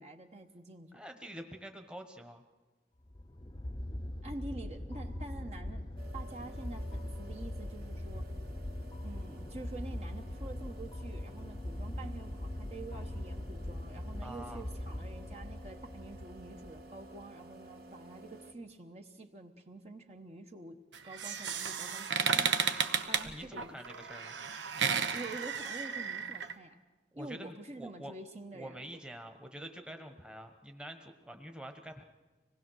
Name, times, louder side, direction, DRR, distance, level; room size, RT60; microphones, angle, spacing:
voice 1, 0.0-1.0 4.2-8.3 9.0-20.8 21.0-22.6 23.1-23.8 25.1-26.7 27.2-29.0, right 2 dB, 35° right, 4 dB, 1.0 m, -47 dB
voice 2, 0.9-2.4 14.2-14.7 23.2-24.4 27.1-28.1 28.5-32.0, right 1 dB, 5° right, 5 dB, 1.1 m, -46 dB
sound 1, 3.0-17.2, left 1 dB, 25° left, 0.7 m, -41 dB
sound 2, 6.0-18.5, right 1 dB, 55° right, 2.3 m, -54 dB
sound 3, 20.9-26.5, right 6 dB, 85° right, 1.0 m, -33 dB
25.5 x 19.0 x 6.3 m, 1.2 s
head